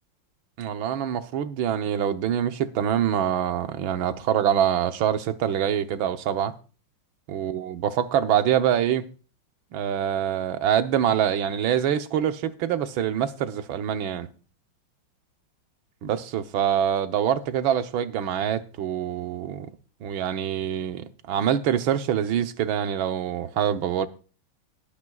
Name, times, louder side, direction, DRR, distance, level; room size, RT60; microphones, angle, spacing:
voice 1, 0.6-6.5 7.3-9.0 9.7-14.3 16.0-19.7 20.0-24.1, right 9 dB, 70° right, 1.6 m, -25 dB
20.5 x 8.7 x 2.3 m
omnidirectional pair, 2.3 m